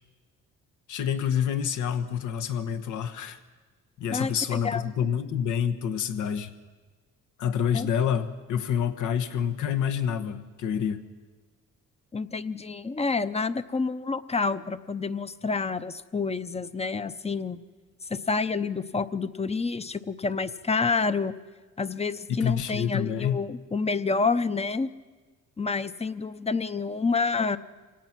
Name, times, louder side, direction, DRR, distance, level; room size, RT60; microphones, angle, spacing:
voice 1, 0.9-3.4 4.0-6.5 7.4-11.1 22.3-23.4, left 8 dB, 80° left, 9 dB, 1.3 m, -28 dB
voice 2, 4.1-4.8 7.7-7.9 12.1-17.6 18.1-21.3 21.8-24.9 25.6-27.6, left 4 dB, 20° left, 13 dB, 0.7 m, -28 dB
26.0 x 18.0 x 6.0 m, 1.4 s
cardioid pair, 90°, 30 cm